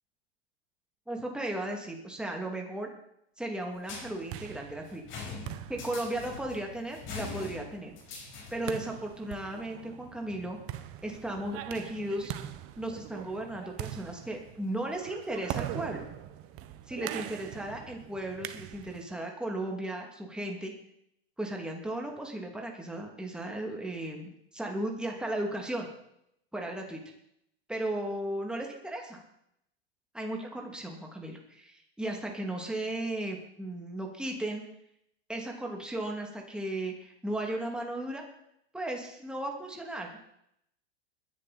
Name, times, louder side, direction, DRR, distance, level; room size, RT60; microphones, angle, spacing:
voice 1, 1.1-2.9 3.4-5.0 5.7-7.9 8.5-10.6 11.0-12.3 12.8-16.1 16.9-20.7 21.4-25.9 26.5-27.0 27.7-29.2 30.1-34.6 35.3-38.2 38.7-40.3, right 1 dB, 5° right, 1 dB, 2.7 m, -35 dB
sound 1, 3.8-8.8, left 4 dB, 40° left, 6.0 m, -43 dB
sound 2, 3.9-19.1, right 12 dB, 45° right, 1.2 m, -42 dB
21.0 x 10.5 x 4.4 m, 0.76 s
hypercardioid pair, 105°, 32 cm